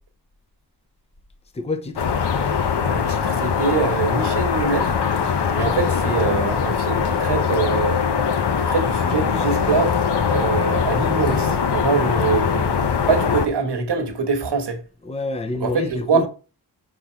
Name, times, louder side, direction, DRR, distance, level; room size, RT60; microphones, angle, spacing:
voice 1, 1.5-2.0 5.6-6.0 15.0-16.3, left 3 dB, 15° left, 0.6 m, -28 dB
sound 1, 2.0-13.5, left 6 dB, 80° left, 0.9 m, -21 dB
voice 2, 2.8-5.0 5.5-8.0 8.7-10.0 10.3-14.8 15.6-16.3, right 5 dB, 90° right, 1.4 m, -24 dB
5.5 x 4.4 x 4.4 m
wide cardioid pair, 150°, 40 cm